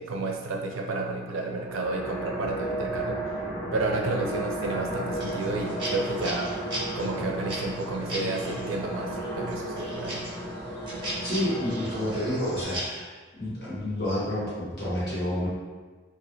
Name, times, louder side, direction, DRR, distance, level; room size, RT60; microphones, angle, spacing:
voice 1, 0.0-3.2 3.7-6.6 6.9-10.2, right 2 dB, 85° right, 1 dB, 0.4 m, -31 dB
sound 1, 1.3-12.6, right 1 dB, 5° left, 0.5 m, -34 dB
sound 2, 5.2-8.7 9.2-12.9, right 1 dB, 25° right, 0.8 m, -37 dB
voice 2, 11.2-15.5, left 1 dB, 50° left, -9 dB, 1.1 m, -30 dB
3.0 x 2.4 x 2.7 m, 1.4 s
head